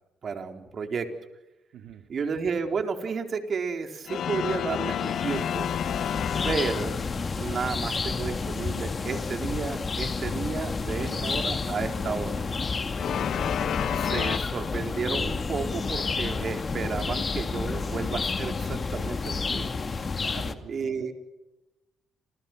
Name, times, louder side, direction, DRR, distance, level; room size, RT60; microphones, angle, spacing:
voice 1, 0.2-1.1 2.1-5.7 6.4-7.0 7.4-12.4 13.8-19.7 20.7-21.1, right 5 dB, 50° right, 5 dB, 4.3 m, -32 dB
voice 2, 1.7-2.1 6.1-6.3 10.9-11.2 14.0-14.4 19.7-19.8 20.2-21.1, right 9 dB, 80° right, 5 dB, 2.3 m, -46 dB
sound 1, 4.0-7.4 12.9-14.4, left 9 dB, 65° left, 1.2 m, -30 dB
sound 2, 4.8-20.5, left 4 dB, 35° left, 2.2 m, -30 dB
29.5 x 29.0 x 6.2 m, 0.97 s
cardioid pair, 90°, 0 cm